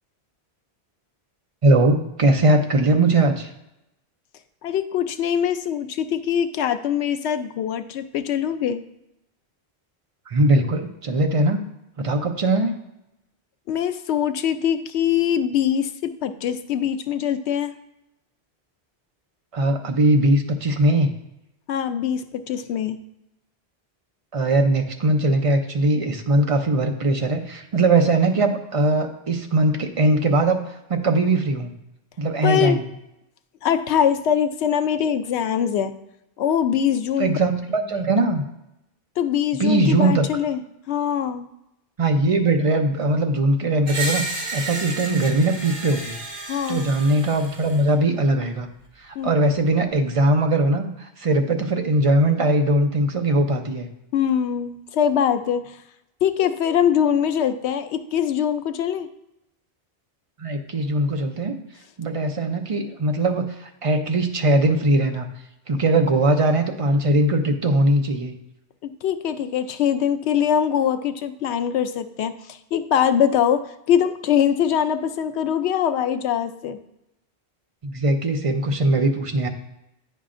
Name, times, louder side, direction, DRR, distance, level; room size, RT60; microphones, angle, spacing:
voice 1, 1.6-3.5 10.3-11.6 12.0-12.7 19.5-21.1 24.3-31.7 32.2-32.8 37.2-38.4 39.6-40.3 42.0-46.2 46.7-48.7 49.0-53.9 60.4-61.6 62.0-65.3 65.7-68.3 77.8-79.5, right 2 dB, 40° right, 5 dB, 0.5 m, -20 dB
voice 2, 4.6-8.8 13.7-17.7 21.7-23.0 32.4-32.8 33.6-35.9 36.4-37.3 39.2-41.5 46.5-46.9 49.2-49.3 54.1-55.8 56.2-59.1 68.8-76.8, left 9 dB, 85° left, 9 dB, 0.8 m, -23 dB
Screech, 43.9-47.9, right 2 dB, 75° right, 1.7 m, -31 dB
9.5 x 5.5 x 2.5 m, 0.85 s
omnidirectional pair, 1.1 m